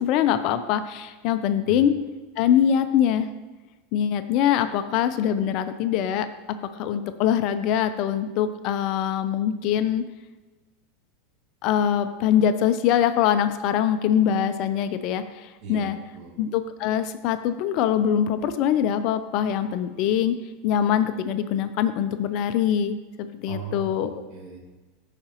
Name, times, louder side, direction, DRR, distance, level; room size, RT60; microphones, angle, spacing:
voice 1, 0.0-1.9 2.4-3.3 3.9-6.3 6.8-10.0 11.6-16.0 16.4-20.4 20.6-24.1, left 9 dB, 55° left, 10 dB, 0.5 m, -23 dB
voice 2, 15.6-16.4 23.5-24.6, right 4 dB, 50° right, -2 dB, 2.3 m, -38 dB
14.0 x 5.0 x 3.0 m, 1.2 s
hypercardioid pair, 110°, 0 cm